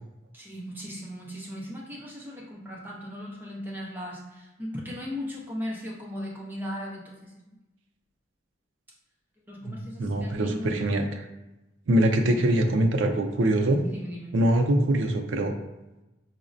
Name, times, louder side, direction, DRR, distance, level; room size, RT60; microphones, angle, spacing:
voice 1, 0.3-7.5 9.5-10.8 13.8-14.3, equal, 10° right, -4 dB, 0.6 m, -37 dB
voice 2, 9.6-11.3 11.9-13.8 14.3-15.5, right 1 dB, 75° right, 5 dB, 0.4 m, -23 dB
4.8 x 2.0 x 2.5 m, 1.0 s
head